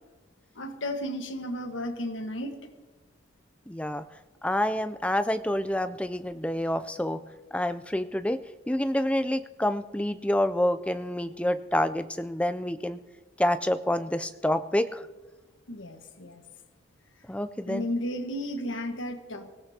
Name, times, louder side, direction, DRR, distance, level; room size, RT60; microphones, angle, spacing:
voice 1, 0.5-2.6 15.7-16.4 17.6-19.5, left 1 dB, 75° left, 6 dB, 1.5 m, -33 dB
voice 2, 3.7-4.0 4.4-7.2 7.5-13.0 13.4-15.1 17.3-17.9, left 1 dB, 5° left, 11 dB, 0.4 m, -28 dB
24.0 x 17.0 x 2.9 m, 1.3 s
head